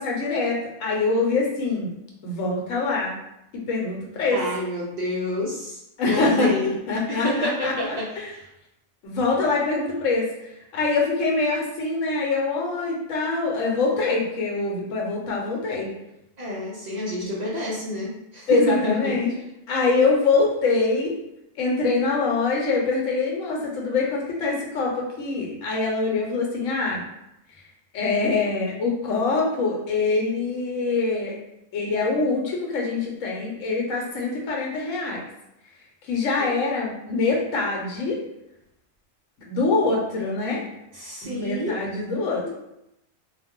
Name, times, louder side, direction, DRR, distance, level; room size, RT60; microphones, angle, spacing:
voice 1, 0.0-1.9 2.2-3.1 3.5-4.4 6.0-7.7 8.2-8.3 9.0-10.3 10.7-15.9 18.5-19.3 19.7-21.2 21.6-27.0 27.9-31.4 31.7-35.2 36.1-38.2 39.5-40.6 41.2-42.4, left 3 dB, 80° left, -1 dB, 1.1 m, -24 dB
voice 2, 4.3-5.8 6.0-6.8 7.1-8.5 16.4-19.2 36.4-36.5 40.9-41.8 42.4-42.5, left 1 dB, 60° right, -5 dB, 0.4 m, -28 dB
2.4 x 2.0 x 3.5 m, 0.85 s
omnidirectional pair, 1.3 m